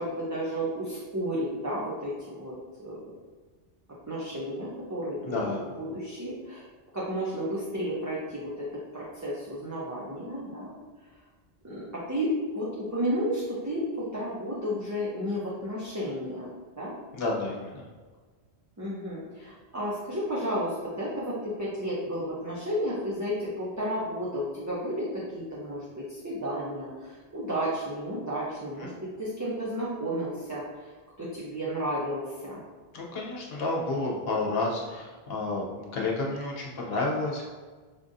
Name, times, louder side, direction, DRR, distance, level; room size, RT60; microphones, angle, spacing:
voice 1, 0.0-2.5 2.8-3.0 4.1-6.7 6.9-8.6 8.9-10.7 11.6-16.5 16.8-17.0 18.8-25.2 25.5-28.9 29.2-30.9 31.2-32.6, equal, 20° right, -8 dB, 0.5 m, -32 dB
voice 2, 5.2-5.6 17.1-17.8 28.8-28.9 32.9-37.5, left 2 dB, 70° left, -2 dB, 1.0 m, -30 dB
5.2 x 2.5 x 2.6 m, 1.4 s
omnidirectional pair, 1.1 m